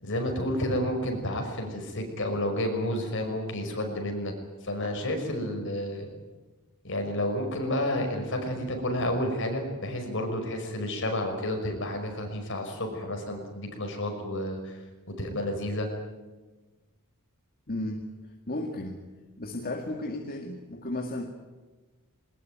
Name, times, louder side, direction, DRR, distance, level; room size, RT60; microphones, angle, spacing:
voice 1, 0.0-4.3 4.6-6.1 6.8-14.8 15.2-15.9, left 1 dB, 60° left, 3 dB, 5.8 m, -30 dB
voice 2, 17.7-19.0 19.4-21.3, left 1 dB, 45° left, 3 dB, 2.1 m, -34 dB
21.5 x 20.0 x 9.3 m, 1.2 s
head